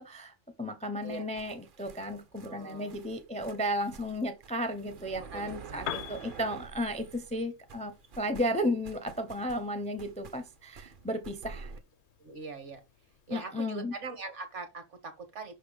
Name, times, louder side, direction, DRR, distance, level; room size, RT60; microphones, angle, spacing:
voice 1, 0.0-11.7 13.3-13.9, equal, 10° left, 0.5 m, -34 dB
sound 1, 1.0-7.4 7.7-11.8, right 5 dB, 50° right, 0.8 m, -49 dB
voice 2, 2.4-3.0 3.5-3.6 4.0-4.1 5.2-6.1 12.2-12.8 13.3-15.5, right 4 dB, 70° right, 1.8 m, -42 dB
Piano, 5.7-13.5, left 10 dB, 65° left, 0.9 m, -47 dB
5.7 x 3.4 x 4.9 m
omnidirectional pair, 1.3 m